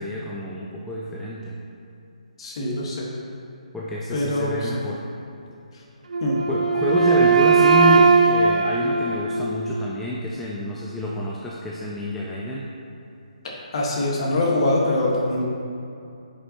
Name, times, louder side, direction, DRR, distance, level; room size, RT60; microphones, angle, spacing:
voice 1, 0.0-1.6 3.7-5.0 6.5-12.7, left 1 dB, 5° left, -5 dB, 0.4 m, -28 dB
voice 2, 2.4-3.1 4.1-4.8 6.2-6.4 13.4-15.4, left 1 dB, 45° left, -2 dB, 1.5 m, -24 dB
Wind instrument woodwind instrument, 6.1-10.0, right 4 dB, 75° right, 0.6 m, -19 dB
9.7 x 5.5 x 3.0 m, 2.6 s
hypercardioid pair, 160°, 4 cm